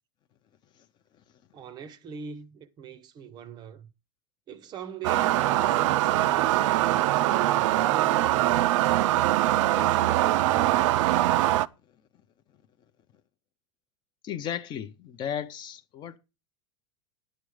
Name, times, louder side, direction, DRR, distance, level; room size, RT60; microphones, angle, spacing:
voice 1, 1.5-3.9 4.5-8.6 9.5-11.2, right 6 dB, 25° right, 0.7 m, -42 dB
sound 1, 5.0-11.7, right 15 dB, 65° right, 0.5 m, -23 dB
voice 2, 14.2-16.2, left 9 dB, 25° left, 0.6 m, -34 dB
10.5 x 7.5 x 4.8 m
supercardioid pair, 160°, 17 cm